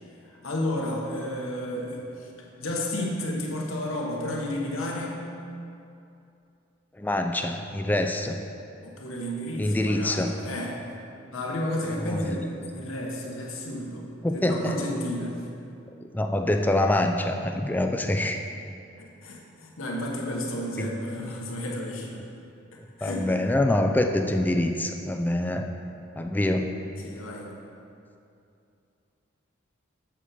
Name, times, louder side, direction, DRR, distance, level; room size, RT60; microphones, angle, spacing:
voice 1, 0.4-2.3 2.6-5.2 8.8-10.9 11.3-12.5 12.7-14.1 14.3-15.4 19.0-22.2 23.0-23.3 27.0-27.5, left 1 dB, 85° left, -1 dB, 1.2 m, -32 dB
voice 2, 7.0-8.4 9.6-10.3 12.0-12.4 14.2-14.8 16.1-18.4 20.8-20.9 23.0-25.7 26.2-26.8, left 1 dB, 10° left, 4 dB, 0.3 m, -25 dB
7.4 x 6.7 x 4.4 m, 2.6 s
head